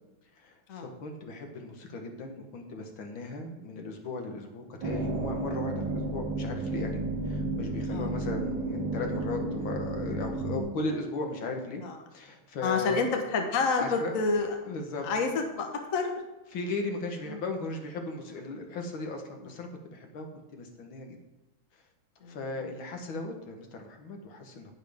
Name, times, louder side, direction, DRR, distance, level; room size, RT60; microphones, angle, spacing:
voice 1, 0.4-11.8 12.1-13.1 13.8-14.2 14.6-15.3 16.5-21.2 21.7-21.8 22.3-24.7, left 3 dB, 70° left, 3 dB, 2.0 m, -37 dB
sound 1, 4.8-10.6, right 2 dB, 70° right, 2.2 m, -32 dB
voice 2, 12.6-14.6 15.0-16.1 17.3-17.4 22.2-22.5, left 4 dB, 45° left, 4 dB, 1.3 m, -29 dB
10.5 x 10.0 x 3.5 m, 1.0 s
omnidirectional pair, 2.3 m